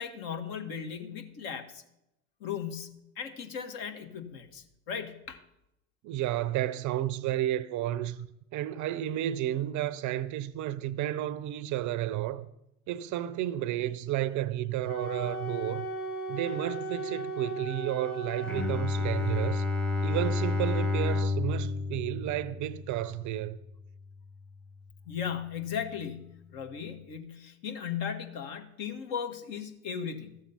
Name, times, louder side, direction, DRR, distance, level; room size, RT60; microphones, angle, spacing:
voice 1, 0.0-1.8 2.4-5.4 25.1-30.4, left 7 dB, 50° left, 1.5 m, -37 dB
voice 2, 6.0-8.3 8.5-12.5 12.9-15.9 16.3-19.6 20.0-23.6, right 13 dB, 40° right, 0.6 m, -32 dB
Wind instrument woodwind instrument, 14.8-18.7, right 2 dB, 75° left, 3.4 m, -36 dB
Bowed string instrument, 18.4-24.2, left 3 dB, 5° left, 0.7 m, -31 dB
13.5 x 7.3 x 5.6 m
hypercardioid pair, 85°, 44 cm